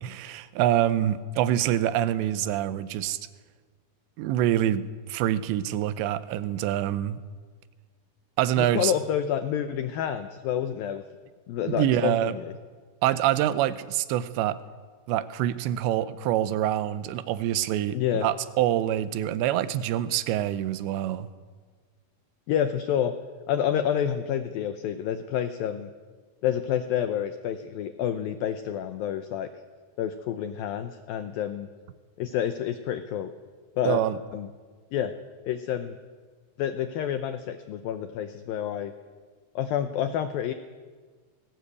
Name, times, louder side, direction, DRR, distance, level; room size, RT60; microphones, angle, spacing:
voice 1, 0.0-3.2 4.2-7.2 8.4-8.9 11.7-12.4 13.0-14.6 15.1-21.3 33.8-34.2, right 12 dB, 80° right, 14 dB, 3.0 m, -26 dB
voice 2, 8.6-11.0 11.5-12.5 17.9-18.3 22.5-23.1 23.5-25.9 26.4-29.5 30.0-31.7 32.2-33.3 33.8-34.0 34.3-34.5 34.9-35.1 35.4-36.0 36.6-38.9 39.6-40.5, left 9 dB, 85° left, 9 dB, 2.0 m, -28 dB
19.5 x 17.5 x 8.4 m, 1.5 s
omnidirectional pair, 5.2 m